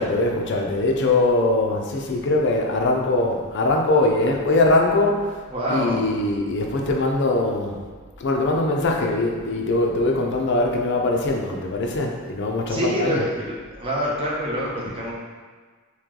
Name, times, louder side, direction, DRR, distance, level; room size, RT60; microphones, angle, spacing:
voice 1, 0.0-5.4 5.7-7.8 8.2-13.2, left 2 dB, 55° left, 1 dB, 0.5 m, -22 dB
voice 2, 5.5-6.1 12.7-15.1, equal, 25° right, -5 dB, 0.7 m, -26 dB
3.1 x 2.9 x 3.7 m, 1.5 s
head